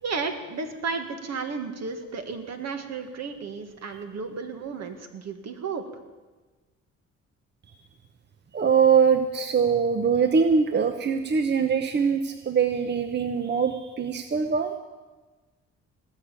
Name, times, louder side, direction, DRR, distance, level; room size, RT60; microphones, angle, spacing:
voice 1, 0.0-5.8, right 4 dB, 60° right, 7 dB, 1.8 m, -33 dB
voice 2, 8.5-14.7, right 6 dB, 35° right, 8 dB, 0.8 m, -22 dB
18.5 x 6.6 x 9.0 m, 1.3 s
cardioid pair, 90°, 30 cm